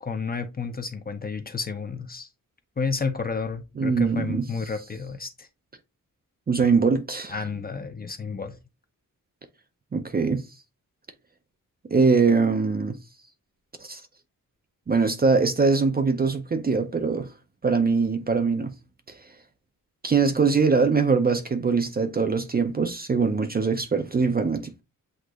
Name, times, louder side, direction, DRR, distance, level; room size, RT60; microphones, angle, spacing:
voice 1, 0.0-2.3 2.8-5.5 7.3-8.6, left 5 dB, 25° left, 0.5 m, -31 dB
voice 2, 3.8-4.4 6.5-7.3 9.9-10.4 11.9-13.0 13.8-14.0 14.9-17.3 17.6-18.7 20.0-24.8, right 4 dB, 30° right, 0.4 m, -22 dB
7.9 x 2.8 x 2.4 m
wide cardioid pair, 165°, 34 cm